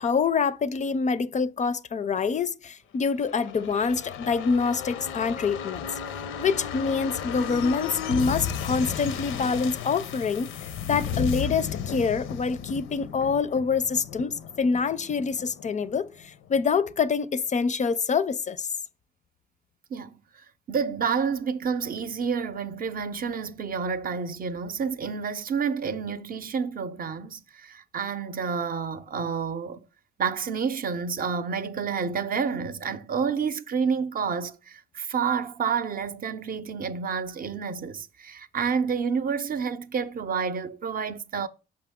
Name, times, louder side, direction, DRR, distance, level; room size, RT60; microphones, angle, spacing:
voice 1, 0.0-5.9 6.4-10.5 10.9-18.7, left 5 dB, 35° left, 0.4 m, -26 dB
sound 1, 3.1-16.6 16.9-17.0, left 8 dB, 85° left, 0.6 m, -34 dB
voice 2, 20.7-29.8 30.2-41.5, right 6 dB, 45° right, 0.6 m, -29 dB
5.9 x 5.2 x 3.5 m
cardioid pair, 90°, 20 cm